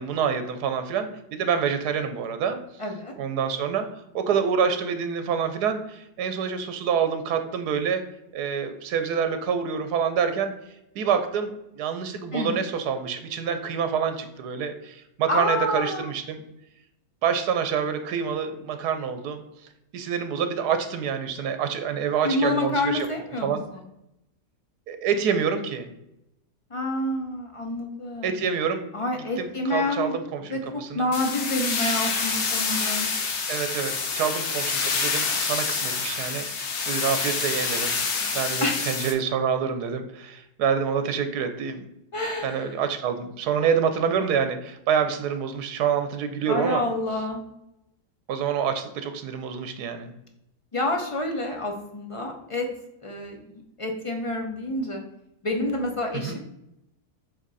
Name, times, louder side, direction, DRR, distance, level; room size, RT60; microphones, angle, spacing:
voice 1, 0.0-2.6 3.2-3.9 4.1-8.0 8.3-10.5 10.9-16.4 17.2-19.4 19.9-23.1 23.4-23.6 24.9-25.9 28.2-28.8 29.4-31.1 33.5-37.9 38.2-41.9 42.4-46.8 48.3-50.1 56.1-56.4, right 7 dB, 85° right, 8 dB, 1.3 m, -27 dB
voice 2, 2.8-3.1 12.3-12.5 15.3-16.1 22.2-23.9 26.7-28.3 28.9-30.1 30.5-33.1 38.6-38.8 42.1-42.7 46.5-47.4 50.7-52.7 53.0-55.0 55.4-56.4, left 2 dB, 45° left, 3 dB, 0.4 m, -28 dB
sound 1, 31.1-39.1, left 5 dB, 85° left, 1.6 m, -27 dB
7.9 x 3.3 x 4.0 m, 0.85 s
omnidirectional pair, 1.7 m